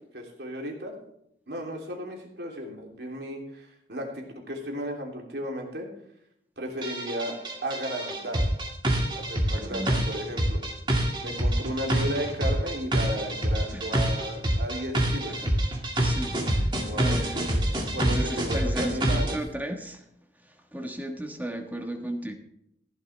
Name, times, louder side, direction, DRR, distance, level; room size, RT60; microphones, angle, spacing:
voice 1, 0.1-0.9 1.5-5.9 6.6-7.4 7.6-8.4 9.1-10.6 11.2-15.4 16.9-17.6 17.9-19.4, equal, 70° right, 1 dB, 3.0 m, -34 dB
sound 1, 6.8-19.4, right 1 dB, 25° right, 2.1 m, -26 dB
voice 2, 9.5-10.0 13.7-14.1 15.3-15.5 16.0-20.0 20.4-22.3, right 1 dB, 10° right, 4 dB, 1.3 m, -35 dB
15.5 x 11.0 x 3.3 m, 0.74 s
head